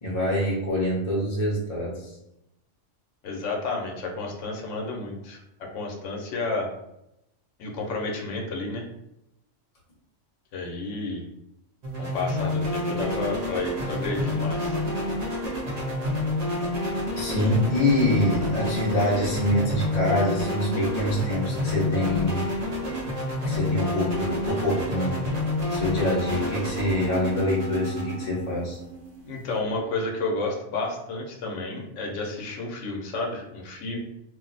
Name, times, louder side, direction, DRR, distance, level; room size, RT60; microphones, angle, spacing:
voice 1, 0.0-2.2 17.1-22.5 23.4-25.2 25.7-28.8, left 1 dB, 35° left, -5 dB, 0.8 m, -25 dB
voice 2, 3.2-6.7 7.6-8.9 10.5-11.2 12.0-14.8 29.2-34.0, left 3 dB, 80° left, 0 dB, 1.0 m, -31 dB
sound 1, 11.8-29.6, left 1 dB, 45° right, 0.6 m, -29 dB
2.6 x 2.0 x 3.9 m, 0.85 s
omnidirectional pair, 1.3 m